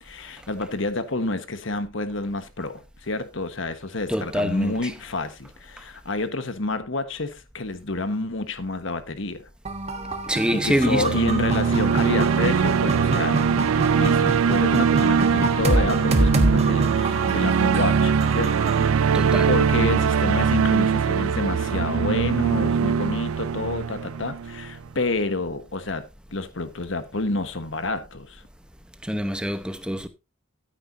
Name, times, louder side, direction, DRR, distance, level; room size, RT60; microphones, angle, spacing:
voice 1, 0.0-9.4 10.5-13.4 13.9-19.1 19.5-28.4, left 2 dB, 60° left, 1.3 m, -29 dB
voice 2, 4.1-4.9 10.2-11.2 19.1-19.5 29.0-30.1, equal, 5° right, 0.9 m, -25 dB
sound 1, 9.7-18.9, right 1 dB, 30° right, 1.4 m, -27 dB
sound 2, 10.6-24.8, right 6 dB, 85° right, 0.4 m, -22 dB
13.5 x 9.0 x 2.7 m
head